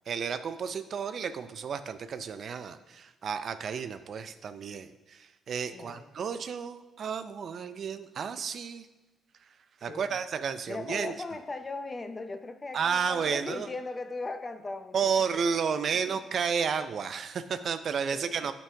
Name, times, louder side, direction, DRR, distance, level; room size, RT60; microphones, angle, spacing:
voice 1, 0.1-8.9 9.8-11.1 12.7-13.7 14.9-18.5, right 6 dB, 55° right, 11 dB, 0.5 m, -32 dB
voice 2, 5.7-6.1 9.9-10.2 10.7-15.1 15.9-16.2 18.1-18.5, left 3 dB, 25° left, 9 dB, 0.6 m, -39 dB
8.9 x 5.4 x 3.4 m, 1.2 s
cardioid pair, 90°, 0 cm